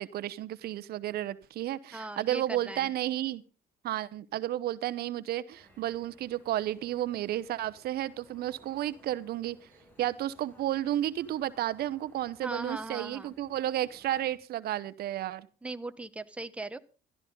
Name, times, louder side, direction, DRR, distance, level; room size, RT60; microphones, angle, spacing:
voice 1, 0.0-3.4 3.8-9.6 10.0-15.5, right 13 dB, 65° right, 16 dB, 0.9 m, -32 dB
voice 2, 1.9-2.9 12.4-13.3 15.6-16.8, right 2 dB, 5° right, 9 dB, 1.1 m, -39 dB
sound 1, 5.5-14.4, equal, 10° left, 6.5 m, -61 dB
16.0 x 13.0 x 3.8 m, 0.37 s
cardioid pair, 110°, 17 cm